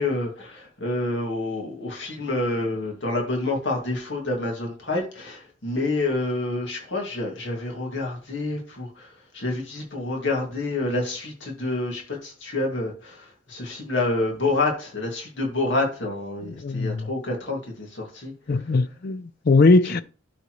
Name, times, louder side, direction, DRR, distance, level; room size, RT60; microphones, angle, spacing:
voice 1, 0.0-18.3 19.8-20.0, left 2 dB, 75° left, 2.2 m, -28 dB
voice 2, 16.4-17.1 18.5-20.0, left 3 dB, 55° left, 0.4 m, -20 dB
12.0 x 4.2 x 3.1 m
head